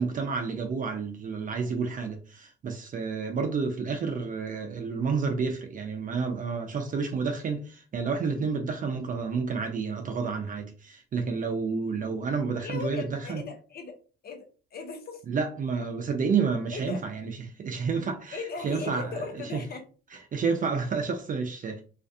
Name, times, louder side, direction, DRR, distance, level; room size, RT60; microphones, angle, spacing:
voice 1, 0.0-13.4 15.3-19.6 20.3-21.8, right 5 dB, 40° right, 0.5 m, -30 dB
voice 2, 12.6-14.0 14.2-15.2 16.7-17.0 18.3-19.8, left 4 dB, 50° left, 0.7 m, -38 dB
2.4 x 2.2 x 2.6 m
cardioid pair, 90°, 20 cm